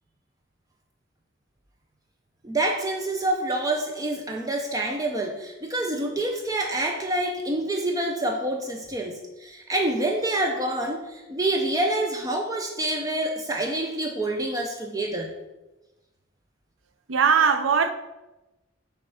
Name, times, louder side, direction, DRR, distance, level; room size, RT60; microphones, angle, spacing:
voice 1, 2.4-15.3, right 1 dB, 20° right, 0.5 m, -27 dB
voice 2, 17.1-17.9, right 6 dB, 70° right, 0.5 m, -20 dB
6.1 x 3.5 x 5.6 m
head